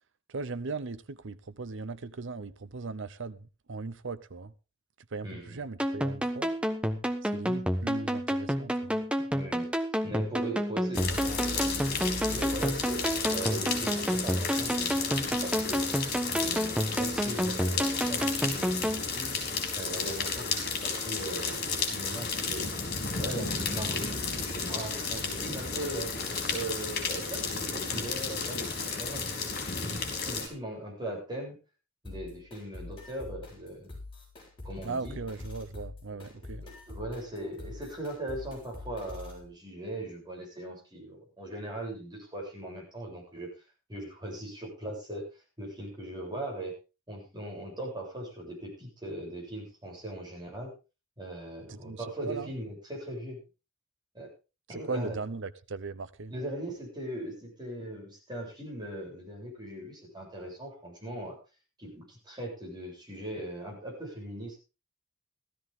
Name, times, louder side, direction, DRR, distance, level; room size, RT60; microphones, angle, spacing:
voice 1, 0.3-3.4 3.7-4.5 5.1-6.5 7.2-9.0 34.8-36.7 51.7-52.5 54.9-56.3, right 4 dB, 65° right, 0.8 m, -38 dB
voice 2, 5.2-5.6 9.3-9.7 10.0-13.0 13.3-15.8 16.3-19.3 19.8-22.6 23.2-26.1 26.5-29.2 30.1-31.6 32.0-33.9 34.6-35.2 36.1-43.5 43.9-45.3 45.6-46.7 47.1-50.7 51.2-53.4 54.1-54.3 54.7-55.1 56.3-61.4 61.8-64.6, right 1 dB, 20° right, 7.6 m, -39 dB
sound 1, 5.8-19.0, equal, 5° right, 1.2 m, -30 dB
sound 2, 10.9-30.5, left 4 dB, 50° left, 4.4 m, -33 dB
sound 3, 32.0-39.4, left 2 dB, 25° left, 7.4 m, -45 dB
16.0 x 13.5 x 3.7 m
head